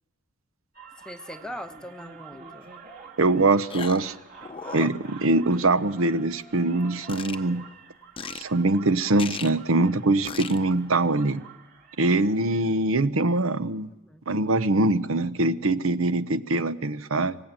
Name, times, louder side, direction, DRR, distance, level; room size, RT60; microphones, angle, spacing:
sound 1, 0.7-12.7, right 5 dB, 40° right, 2.7 m, -48 dB
voice 1, 1.0-2.7 13.9-14.2, equal, 5° left, 6 dB, 1.0 m, -41 dB
sound 2, 2.6-2.7 3.7-4.1 4.4-5.5 5.8-6.0 7.1-7.4 8.2-8.4 9.2-9.5 10.2-10.6, left 5 dB, 25° left, 0.8 m, -36 dB
voice 2, 3.2-4.1 4.7-7.6 8.3-11.4 12.0-13.9 14.3-17.4, right 2 dB, 65° right, 14 dB, 0.9 m, -23 dB
26.5 x 15.5 x 9.0 m, 1.0 s
head